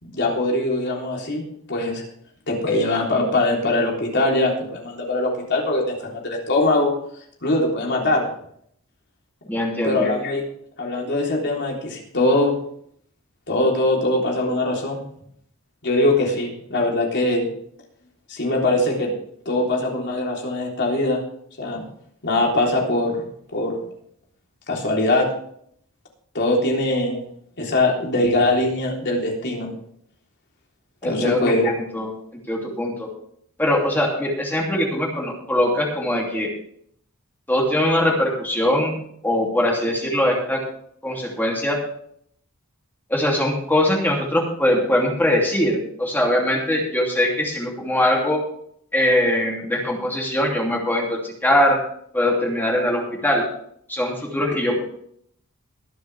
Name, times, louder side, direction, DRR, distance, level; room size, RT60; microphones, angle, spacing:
voice 1, 0.0-2.0 2.5-6.9 7.4-8.3 9.8-10.4 10.8-12.6 13.5-15.0 15.8-17.5 18.3-19.1 19.5-21.2 21.6-21.8 22.2-23.3 23.5-23.8 24.7-25.3 26.3-27.2 27.6-29.7 31.0-31.7, left 2 dB, 55° left, -1 dB, 3.6 m, -22 dB
voice 2, 9.5-10.1 31.0-32.1 32.5-33.1 33.6-36.5 37.5-39.0 39.2-40.6 41.0-41.8 43.1-48.4 48.9-51.8 52.1-53.5 53.9-54.8, left 1 dB, 10° left, -1 dB, 2.8 m, -21 dB
23.0 x 7.8 x 3.4 m, 0.65 s
head